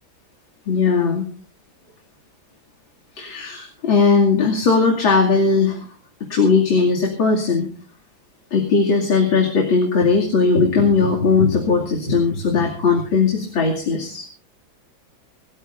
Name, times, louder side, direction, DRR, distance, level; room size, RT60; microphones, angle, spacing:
voice 1, 0.7-1.2 3.2-5.9 6.3-7.7 8.5-14.3, left 4 dB, 90° left, 0 dB, 3.4 m, -18 dB
26.0 x 15.0 x 2.6 m, 0.39 s
omnidirectional pair, 2.1 m